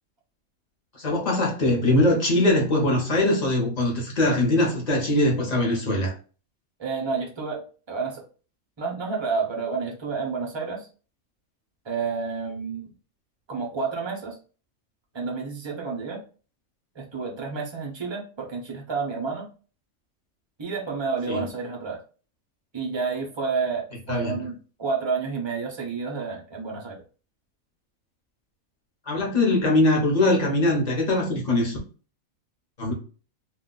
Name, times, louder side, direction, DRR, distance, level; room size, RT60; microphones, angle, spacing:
voice 1, 1.0-6.1 21.3-21.4 24.1-24.4 29.1-31.8 32.8-32.9, left 1 dB, 35° left, -1 dB, 0.7 m, -22 dB
voice 2, 6.8-8.2 8.8-10.9 11.8-12.9 13.5-14.4 15.1-16.2 16.9-19.5 20.6-22.0 22.7-27.0, right 4 dB, 40° right, -1 dB, 0.4 m, -30 dB
2.5 x 2.2 x 3.7 m, 0.38 s
omnidirectional pair, 1.5 m